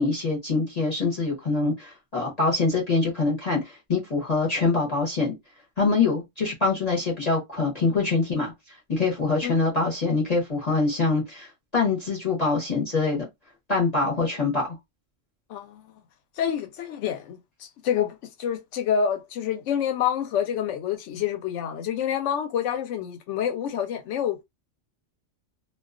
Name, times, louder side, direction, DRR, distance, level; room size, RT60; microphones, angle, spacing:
voice 1, 0.0-5.3 5.8-8.5 8.9-13.3 13.7-14.7, left 3 dB, 40° left, 0.7 m, -24 dB
voice 2, 15.5-15.8 16.4-24.4, left 8 dB, 75° left, 0.9 m, -28 dB
2.3 x 2.3 x 2.4 m
omnidirectional pair, 1.3 m